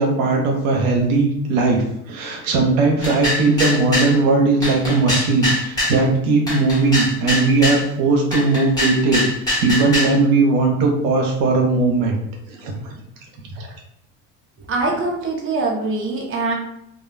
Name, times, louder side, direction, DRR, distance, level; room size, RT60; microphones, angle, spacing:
voice 1, 0.0-9.2 9.6-12.2 12.6-12.9 13.5-13.7, right 3 dB, 80° right, 1 dB, 0.8 m, -18 dB
sound 1, 3.0-4.1 4.6-6.0 6.5-7.8 8.3-10.2, left 1 dB, 10° left, 1.3 m, -23 dB
voice 2, 14.7-16.5, right 3 dB, 30° right, 0 dB, 0.7 m, -23 dB
2.3 x 2.3 x 3.1 m, 0.76 s
supercardioid pair, 95°, 40 cm